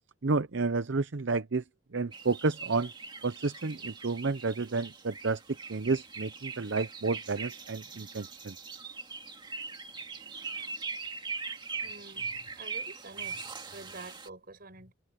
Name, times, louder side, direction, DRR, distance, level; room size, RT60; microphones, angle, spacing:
voice 1, 0.2-1.6 1.9-2.9 3.2-5.4 5.7-8.5, right 3 dB, 60° right, 0.7 m, -30 dB
sound 1, 2.1-14.3, right 4 dB, 25° right, 2.1 m, -41 dB
voice 2, 11.7-14.9, right 2 dB, 45° right, 6.0 m, -48 dB
head